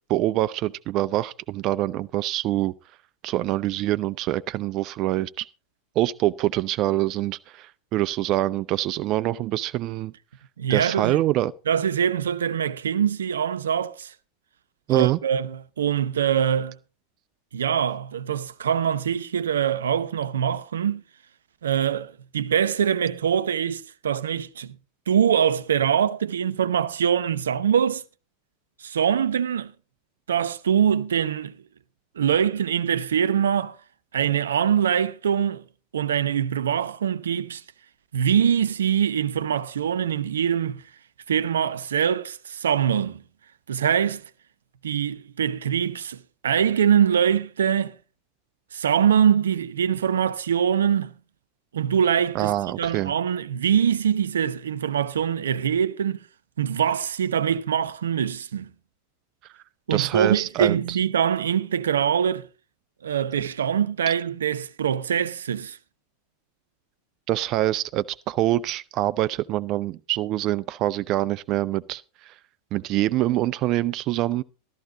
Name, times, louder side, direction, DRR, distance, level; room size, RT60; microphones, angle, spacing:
voice 1, 0.1-2.7 3.2-5.5 6.0-10.1 10.7-11.5 14.9-15.2 52.3-53.1 59.9-61.0 67.3-72.4 72.7-74.4, right 15 dB, 45° right, 0.5 m, -25 dB
voice 2, 10.6-11.2 11.7-14.1 14.9-16.8 17.5-21.0 21.6-24.8 25.1-28.0 28.8-29.7 30.3-31.6 32.2-33.8 34.1-35.6 35.9-37.6 38.1-40.8 41.3-43.2 43.7-44.2 44.8-48.0 48.7-51.1 51.7-52.5 52.8-56.2 56.6-58.7 59.9-62.5 63.0-65.8, right 8 dB, 75° right, 0.8 m, -23 dB
13.5 x 13.0 x 3.9 m
figure-of-eight pair, 90°, 0 cm